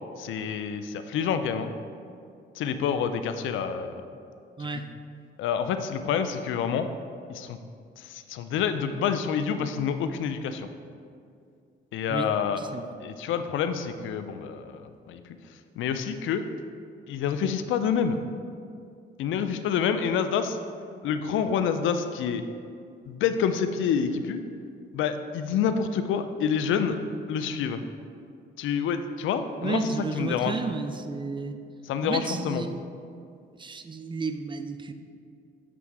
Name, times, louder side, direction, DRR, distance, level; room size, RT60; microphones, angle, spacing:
voice 1, 0.2-1.7 2.6-4.0 4.7-4.8 5.4-6.9 7.3-7.6 8.0-10.7 11.9-12.6 13.0-15.2 15.8-16.4 17.1-18.2 19.2-20.6 21.0-22.4 23.0-24.4 24.9-27.0 27.3-27.8 28.6-30.6 31.9-32.6, left 7 dB, 80° left, 9 dB, 0.5 m, -27 dB
voice 2, 12.1-12.9 29.6-31.5 32.0-32.9 33.6-34.9, right 3 dB, 25° right, 8 dB, 0.4 m, -32 dB
7.6 x 3.5 x 4.7 m, 2.3 s
cardioid pair, 90°, 20 cm